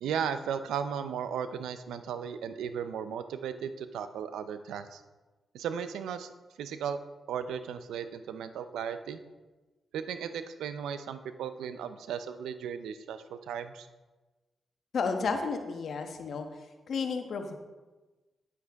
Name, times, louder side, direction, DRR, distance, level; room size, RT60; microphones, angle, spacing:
voice 1, 0.0-5.0 5.5-6.3 6.6-7.0 7.3-9.2 9.9-13.9, right 7 dB, 85° right, 11 dB, 0.5 m, -36 dB
voice 2, 14.9-16.5 16.9-17.5, left 5 dB, 65° left, 5 dB, 1.2 m, -32 dB
9.4 x 8.6 x 3.6 m, 1.2 s
supercardioid pair, 50°, 0 cm